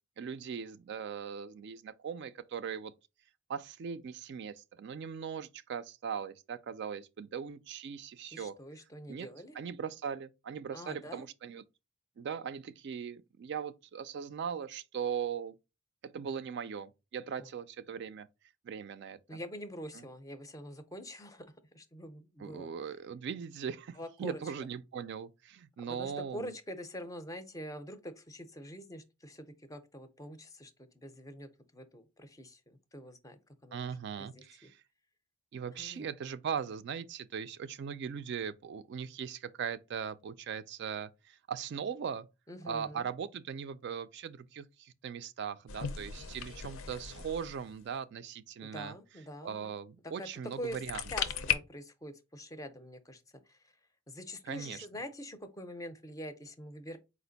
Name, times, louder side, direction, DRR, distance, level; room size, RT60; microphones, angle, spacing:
voice 1, 0.2-2.9 3.5-8.6 9.1-9.3 9.5-11.6 12.2-15.6 16.0-18.3 18.6-19.2 22.4-26.5 33.7-34.8 35.5-42.3 42.7-48.9 49.4-51.0 54.5-54.8, right 7 dB, 55° right, 0.3 m, -39 dB
voice 2, 8.3-9.6 10.7-11.3 17.4-17.5 19.3-21.5 21.7-22.7 24.0-24.5 25.9-33.9 34.2-34.7 35.8-36.1 42.5-43.1 48.6-49.7 50.0-50.3 50.6-50.8 51.1-53.8 54.1-57.0, equal, 15° left, 0.5 m, -45 dB
sound 1, 45.7-47.9 50.5-51.5, left 8 dB, 80° left, 0.5 m, -36 dB
4.2 x 2.5 x 3.9 m
head